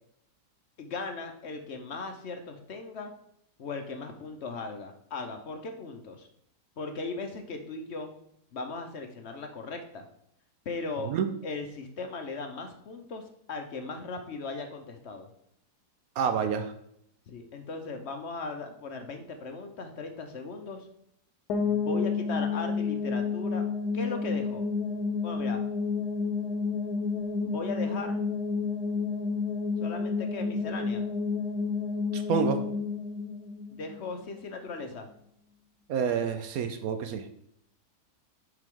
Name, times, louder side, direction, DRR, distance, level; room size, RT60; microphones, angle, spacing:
voice 1, 0.8-3.1 3.6-6.3 6.8-8.1 8.5-10.1 10.7-11.1 11.4-15.3 17.3-20.9 21.6-23.6 23.9-24.6 25.2-25.6 27.4-28.2 29.8-31.1 33.7-35.1, left 3 dB, 55° left, 5 dB, 0.8 m, -38 dB
voice 2, 16.2-16.7 32.1-32.6 35.9-37.2, right 6 dB, 65° right, 8 dB, 1.0 m, -28 dB
sound 1, 21.5-34.4, left 4 dB, 70° left, 1.4 m, -30 dB
7.7 x 4.9 x 3.7 m, 0.73 s
omnidirectional pair, 1.8 m